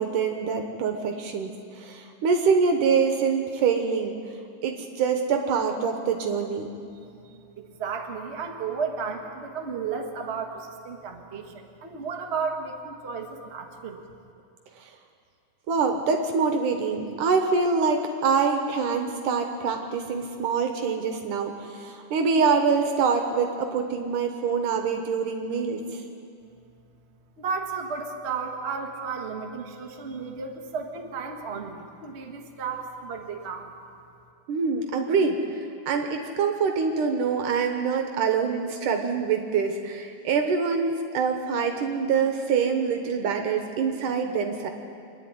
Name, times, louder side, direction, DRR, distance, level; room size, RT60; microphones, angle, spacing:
voice 1, 0.0-4.1 4.6-6.7 15.7-26.0 34.5-44.7, right 5 dB, 70° right, 5 dB, 2.5 m, -25 dB
voice 2, 7.2-14.0 27.4-33.7, right 5 dB, 45° right, 2 dB, 0.8 m, -33 dB
25.5 x 10.5 x 9.6 m, 2.5 s
omnidirectional pair, 4.0 m